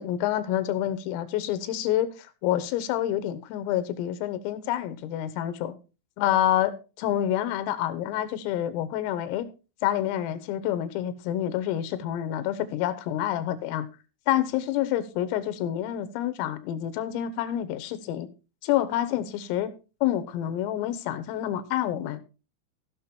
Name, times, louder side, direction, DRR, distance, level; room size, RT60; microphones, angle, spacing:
voice 1, 0.0-5.8 6.2-9.5 9.8-13.9 14.3-18.3 18.6-19.7 20.0-22.2, left 12 dB, 85° left, 3.6 m, -28 dB
16.5 x 6.2 x 4.3 m
omnidirectional pair, 5.9 m